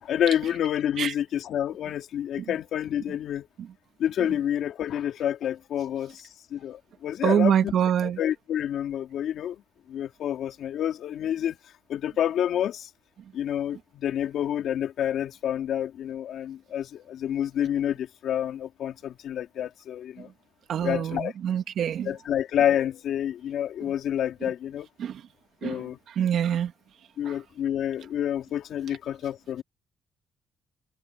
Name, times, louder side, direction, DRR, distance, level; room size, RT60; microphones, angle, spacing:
voice 1, 0.0-3.5 4.0-7.7 8.0-9.6 9.9-11.6 11.9-12.9 13.3-20.3 20.8-21.3 22.0-24.9 25.6-26.0 27.2-29.6, left 10 dB, 75° left, 3.5 m, -28 dB
voice 2, 7.2-8.2 20.7-21.2 21.4-22.1 25.0-25.1 25.6-25.8 26.2-26.7, right 9 dB, 70° right, 2.8 m, -24 dB
cardioid pair, 90°, 0 cm